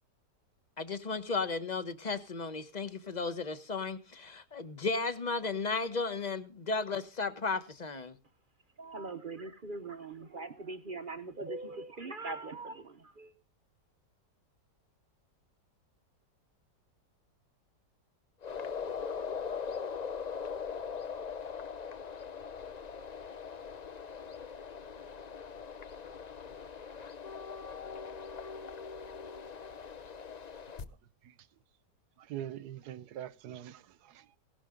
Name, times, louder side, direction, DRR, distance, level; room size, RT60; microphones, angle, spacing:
voice 1, 0.8-8.1, left 4 dB, 30° left, 0.9 m, -34 dB
voice 2, 8.8-13.3, right 3 dB, 40° right, 0.7 m, -41 dB
sound 1, 18.4-30.8, left 6 dB, 90° left, 0.3 m, -41 dB
voice 3, 32.2-34.3, right 11 dB, 70° right, 1.3 m, -43 dB
17.0 x 11.5 x 3.8 m
omnidirectional pair, 1.8 m